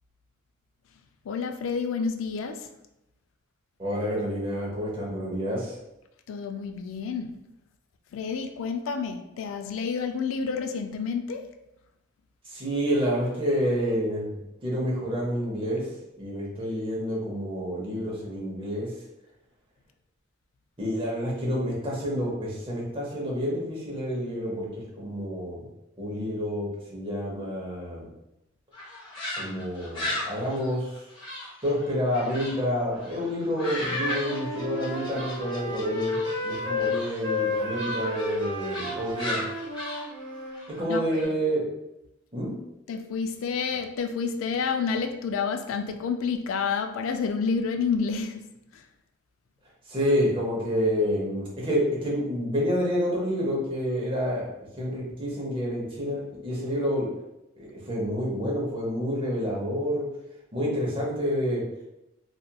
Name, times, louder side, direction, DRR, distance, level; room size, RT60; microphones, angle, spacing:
voice 1, 1.3-2.7 6.3-7.3 8.1-11.5 40.9-41.4 42.9-48.8, left 5 dB, 85° left, 6 dB, 0.3 m, -29 dB
voice 2, 3.8-5.7 12.5-14.3 14.6-15.9 16.2-18.9 20.8-25.6 26.0-28.1 29.4-30.9 31.6-39.4 40.8-41.6 42.3-42.5 49.9-54.5 54.8-57.1 57.5-60.0 60.5-61.6, equal, 25° right, -4 dB, 0.8 m, -28 dB
sound 1, 28.7-32.6 32.9-41.2, left 1 dB, 25° left, 1.1 m, -36 dB
Wind instrument woodwind instrument, 33.8-40.6, left 2 dB, 75° right, 0.8 m, -31 dB
2.8 x 2.4 x 2.2 m, 0.89 s
head